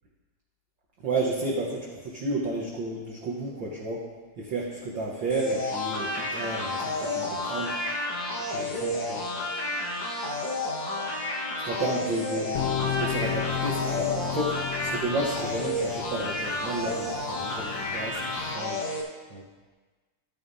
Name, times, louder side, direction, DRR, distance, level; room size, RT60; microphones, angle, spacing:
voice 1, 1.0-4.1 4.4-7.7 8.5-9.2 11.6-18.8 19.3-19.4, right 2 dB, 65° right, -3 dB, 1.1 m, -32 dB
sound 1, 5.3-19.0, left 2 dB, 55° left, 2.0 m, -31 dB
sound 2, 12.5-18.5, left 9 dB, 85° left, 1.4 m, -34 dB
14.5 x 9.1 x 2.7 m, 1.3 s
omnidirectional pair, 3.6 m